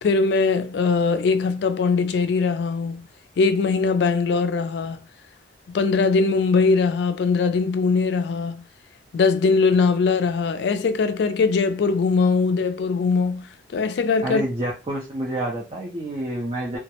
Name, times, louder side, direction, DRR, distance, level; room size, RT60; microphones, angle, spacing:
voice 1, 0.0-3.1 3.4-5.0 5.7-8.6 9.1-14.4, left 4 dB, 65° left, 0.3 m, -21 dB
voice 2, 14.2-16.8, right 1 dB, 30° right, 0.5 m, -28 dB
2.2 x 2.0 x 2.9 m
head